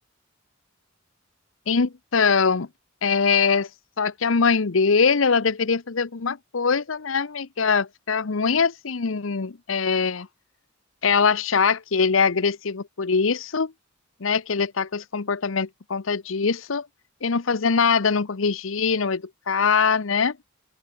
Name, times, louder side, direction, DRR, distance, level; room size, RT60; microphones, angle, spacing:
voice 1, 1.7-2.7 3.0-3.7 4.0-10.3 11.0-13.7 14.2-16.9 17.2-20.4, left 5 dB, 80° left, 0.8 m, -22 dB
open air
head